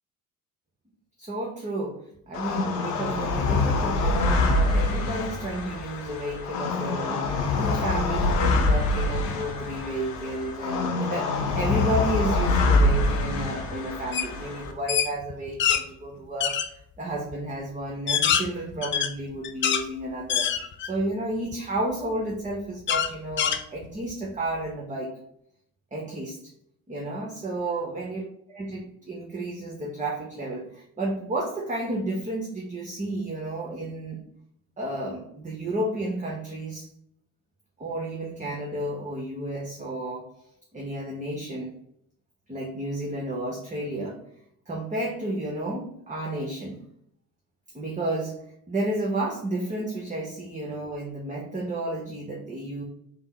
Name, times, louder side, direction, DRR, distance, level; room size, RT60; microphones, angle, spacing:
voice 1, 1.2-16.6 17.0-20.5 20.8-25.1 25.9-26.4 26.9-28.2 28.5-34.2 34.8-36.9 37.8-40.3 40.7-41.7 42.5-44.2 44.7-46.8 47.7-48.3 48.7-52.8, right 1 dB, 15° right, -1 dB, 0.8 m, -32 dB
sound 1, 2.3-14.7, left 2 dB, 90° left, 0.6 m, -25 dB
sound 2, 14.1-14.3 14.7-15.8 16.4-16.7 17.3-17.4 17.9-19.9 20.3-21.0 21.5-21.6 22.9-24.1, left 8 dB, 30° left, 0.3 m, -25 dB
3.5 x 2.0 x 4.2 m, 0.71 s
hypercardioid pair, 55°, 46 cm